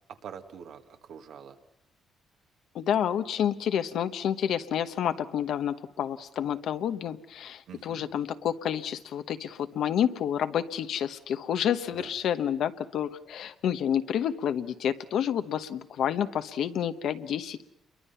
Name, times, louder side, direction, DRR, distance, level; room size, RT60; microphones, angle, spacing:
voice 1, 0.1-1.6 7.7-8.1 12.0-12.1, right 8 dB, 75° right, 6 dB, 1.6 m, -45 dB
voice 2, 2.7-17.6, left 9 dB, 75° left, 10 dB, 1.0 m, -29 dB
28.0 x 22.5 x 5.7 m, 0.83 s
cardioid pair, 90°, 0 cm